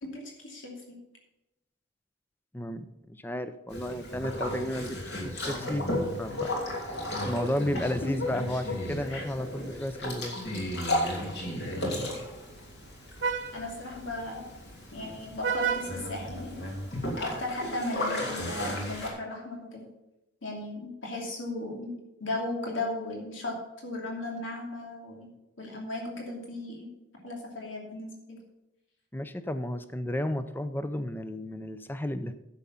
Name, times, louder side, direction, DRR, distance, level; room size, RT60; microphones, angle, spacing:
voice 1, 0.0-1.0 7.7-8.1 9.1-9.2 9.5-9.7 13.5-14.5 14.9-16.6 17.2-19.9 20.4-23.6 23.8-25.3 25.6-26.9 27.2-28.4, left 2 dB, 90° left, -1 dB, 2.7 m, -36 dB
voice 2, 2.5-5.9 6.2-6.5 7.2-10.4 29.1-32.3, left 1 dB, 10° left, 11 dB, 0.5 m, -33 dB
Boat Water vehicle, 3.7-19.1, left 1 dB, 60° left, 2.9 m, -34 dB
Vehicle horn car horn honking, 8.9-17.0, right 6 dB, 70° right, 0.8 m, -38 dB
10.5 x 7.4 x 5.6 m, 0.93 s
head